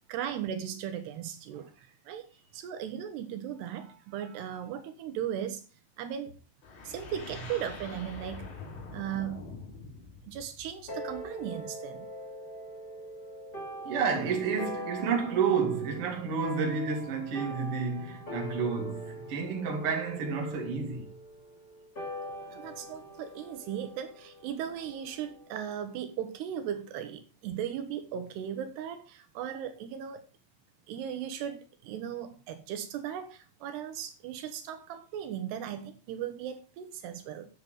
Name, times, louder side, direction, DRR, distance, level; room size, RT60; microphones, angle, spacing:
voice 1, 0.1-1.7 2.1-2.3 2.5-5.6 6.0-6.4 6.8-8.5 8.9-9.5 10.2-12.1 22.5-30.2 30.9-37.5, right 9 dB, 80° right, 3.1 m, -37 dB
sound 1, 6.6-11.5, left 3 dB, 85° left, 5.8 m, -45 dB
sound 2, 10.9-25.6, equal, 20° left, 1.8 m, -43 dB
voice 2, 13.8-21.1, right 5 dB, 40° right, 2.7 m, -30 dB
10.5 x 7.8 x 4.8 m
omnidirectional pair, 4.8 m